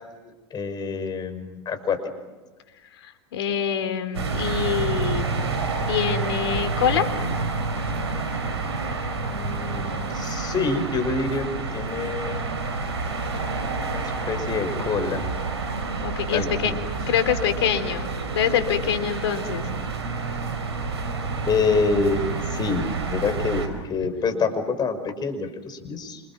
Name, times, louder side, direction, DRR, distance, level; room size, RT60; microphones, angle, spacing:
voice 1, 0.0-2.0 9.2-11.5 11.7-12.5 13.8-15.3 16.3-16.9 21.5-26.2, left 4 dB, 30° left, 7 dB, 5.8 m, -27 dB
voice 2, 3.0-5.2 5.9-7.1 16.0-16.7 17.1-19.7, left 8 dB, 75° left, 9 dB, 3.6 m, -25 dB
sound 1, 4.1-23.7, right 3 dB, 85° right, 5.0 m, -28 dB
28.5 x 27.0 x 6.2 m, 1.2 s
hypercardioid pair, 90°, 14 cm